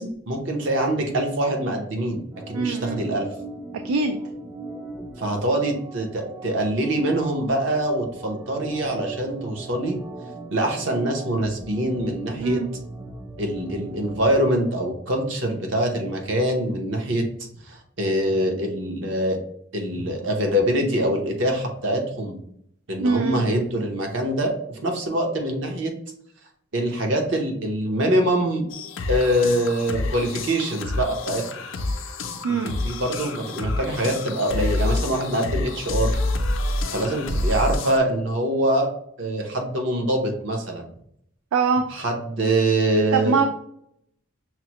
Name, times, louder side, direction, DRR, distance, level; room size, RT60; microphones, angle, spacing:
voice 1, 0.0-3.3 5.2-10.0 10.5-12.6 13.4-17.3 17.7-19.4 19.7-22.4 22.9-25.9 26.7-28.6 29.1-31.4 32.6-36.2 36.9-38.9 39.2-40.8 41.9-43.4, right 1 dB, 60° right, 2 dB, 0.8 m, -24 dB
Organ, 2.3-14.5, right 2 dB, 5° right, 0.4 m, -39 dB
voice 2, 2.5-3.2 3.8-4.2 12.4-12.7 23.0-23.6 32.4-32.7 41.5-41.8 43.1-43.5, right 4 dB, 85° right, 5 dB, 0.3 m, -23 dB
sound 1, 28.7-38.0, left 2 dB, 65° left, 0.5 m, -28 dB
5.8 x 2.0 x 2.9 m, 0.68 s
head